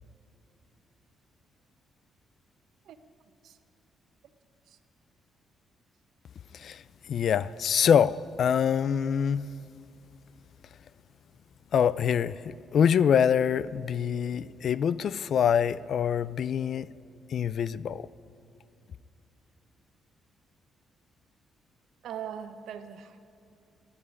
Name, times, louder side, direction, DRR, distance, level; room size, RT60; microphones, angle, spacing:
voice 1, 7.1-9.5 11.7-16.9 17.3-18.1, left 8 dB, 60° left, 0.4 m, -25 dB
voice 2, 22.0-23.2, right 8 dB, 75° right, 0.9 m, -40 dB
14.0 x 9.8 x 9.7 m
cardioid pair, 90°, 0 cm